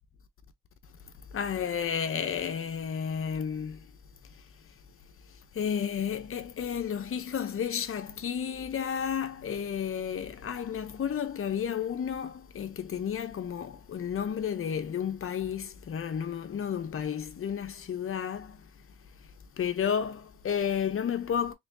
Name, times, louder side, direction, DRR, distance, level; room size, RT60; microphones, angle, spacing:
voice 1, 1.3-3.8 5.6-18.5 19.6-21.5, left 8 dB, 45° left, 0.9 m, -32 dB
4.2 x 3.4 x 2.8 m
cardioid pair, 90°, 30 cm